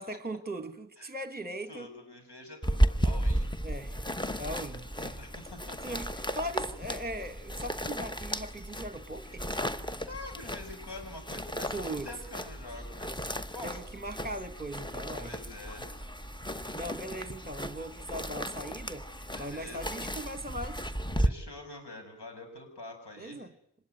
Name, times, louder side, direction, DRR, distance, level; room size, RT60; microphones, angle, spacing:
voice 1, 0.0-1.9 3.6-4.0 4.3-5.2 5.8-9.4 11.7-12.1 13.6-15.3 16.7-19.1 19.4-20.8 23.2-23.5, right 1 dB, 20° right, 1.4 m, -39 dB
voice 2, 1.4-3.5 5.2-6.0 10.0-13.8 15.2-15.9 19.3-19.9 21.2-23.4, left 2 dB, 75° left, 6.7 m, -46 dB
sound 1, 2.6-21.3, equal, 10° left, 1.1 m, -34 dB
25.5 x 20.5 x 9.3 m
wide cardioid pair, 65°, 41 cm